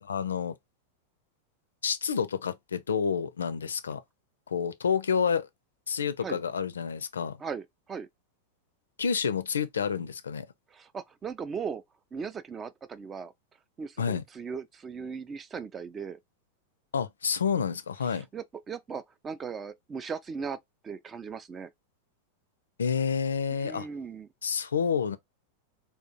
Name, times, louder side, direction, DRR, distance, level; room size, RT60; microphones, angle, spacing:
voice 1, 0.0-0.5 1.8-4.0 4.5-5.5 5.9-7.4 9.0-10.5 14.0-14.2 16.9-18.3 22.8-23.9 24.4-25.2, left 6 dB, 70° left, 0.4 m, -29 dB
voice 2, 7.4-8.1 10.7-11.8 12.1-13.3 13.8-16.2 18.1-20.6 20.8-21.7 23.6-24.3, right 6 dB, 20° right, 0.3 m, -38 dB
3.5 x 2.3 x 2.7 m
figure-of-eight pair, 90°, 0 cm